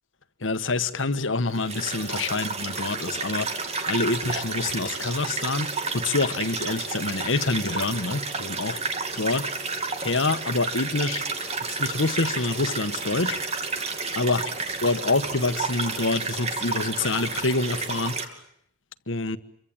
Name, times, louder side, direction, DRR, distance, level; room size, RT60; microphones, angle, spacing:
voice 1, 0.4-3.6 3.9-8.8 9.1-9.5 10.0-11.2 11.7-13.4 14.1-14.4 14.8-18.4 19.1-19.4, left 3 dB, 80° left, 1.5 m, -26 dB
sound 1, 1.5-18.3, right 4 dB, 35° right, 2.9 m, -31 dB
27.5 x 24.0 x 8.9 m
head